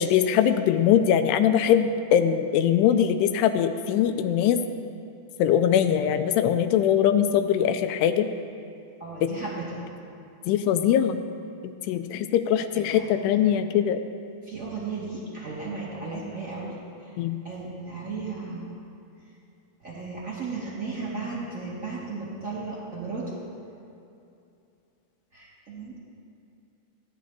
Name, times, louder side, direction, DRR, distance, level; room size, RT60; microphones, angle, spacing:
voice 1, 0.0-4.6 5.4-8.3 9.2-9.3 10.5-11.2 11.9-14.0 17.2-17.4, left 9 dB, 85° left, 9 dB, 2.6 m, -22 dB
voice 2, 9.0-9.8 12.7-13.1 14.4-17.2 17.4-18.8 19.8-23.4 25.3-25.9, right 3 dB, 30° right, -8 dB, 1.5 m, -35 dB
17.0 x 10.5 x 2.8 m, 2.6 s
omnidirectional pair, 4.8 m